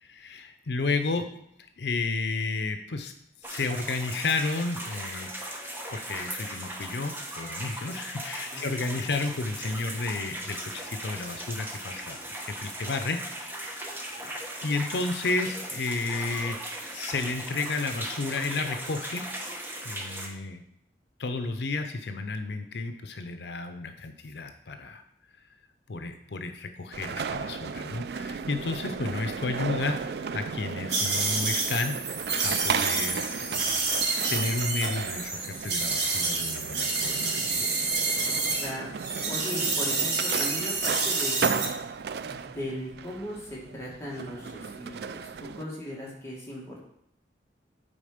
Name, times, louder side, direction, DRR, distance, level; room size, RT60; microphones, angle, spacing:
voice 1, 0.0-1.3 1.8-3.1 3.4-5.6 5.9-12.2 12.5-13.8 14.6-19.3 19.8-20.6 21.2-25.0 25.9-31.9 32.4-33.9 34.3-37.6, left 3 dB, 75° left, 7 dB, 0.6 m, -32 dB
sound 1, 3.4-20.3, right 1 dB, 10° right, 1.0 m, -38 dB
sound 2, 26.9-45.6, right 6 dB, 60° right, 0.3 m, -35 dB
sound 3, 30.9-38.7 39.0-41.7, right 3 dB, 85° right, 1.9 m, -28 dB
voice 2, 38.6-38.9 39.3-41.5 42.2-46.9, left 1 dB, 15° left, -5 dB, 1.9 m, -38 dB
8.7 x 4.3 x 5.1 m, 0.74 s
head